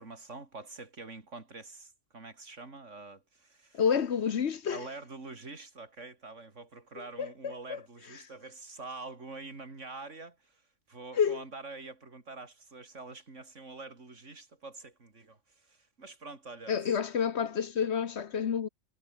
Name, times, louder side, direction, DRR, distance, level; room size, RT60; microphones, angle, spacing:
voice 1, 0.0-3.8 4.7-10.6 10.9-16.8, right 3 dB, 70° right, 3.5 m, -46 dB
voice 2, 3.7-4.8 7.2-7.8 11.2-11.4 16.7-18.7, left 7 dB, 60° left, 1.2 m, -29 dB
omnidirectional pair, 1.3 m